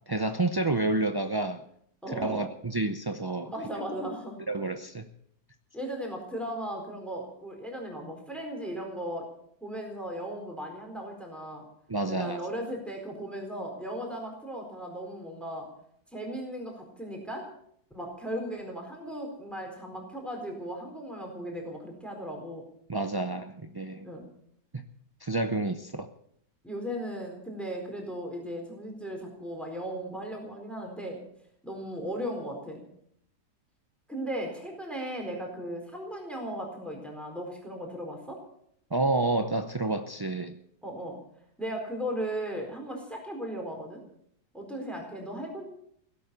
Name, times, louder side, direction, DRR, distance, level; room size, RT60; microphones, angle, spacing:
voice 1, 0.1-1.6 2.1-3.5 4.5-5.1 11.9-12.4 22.9-24.1 24.7-24.8 25.2-26.1 38.9-40.6, right 2 dB, 30° right, 6 dB, 0.4 m, -29 dB
voice 2, 2.0-2.5 3.4-4.4 5.7-9.3 9.6-11.6 12.1-15.7 16.1-17.5 17.9-22.6 24.0-24.2 26.6-31.2 31.6-32.8 34.1-38.4 40.8-41.2 41.6-44.0 44.5-45.7, equal, ahead, 1 dB, 4.2 m, -36 dB
17.0 x 11.5 x 6.9 m, 0.69 s
omnidirectional pair, 1.7 m